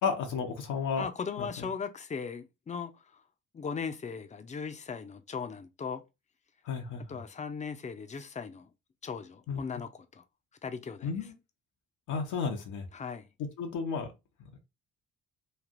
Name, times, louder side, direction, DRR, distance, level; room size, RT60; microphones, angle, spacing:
voice 1, 0.0-1.1 1.4-1.7 6.6-7.2 9.5-9.6 11.0-11.3 12.1-12.9 13.6-14.1, left 5 dB, 85° left, 0.8 m, -32 dB
voice 2, 1.0-3.2 3.5-6.0 7.1-8.7 9.0-10.2 10.6-11.1 12.9-13.3, left 6 dB, 25° left, 0.5 m, -38 dB
3.2 x 2.5 x 2.5 m
cardioid pair, 90°, 30 cm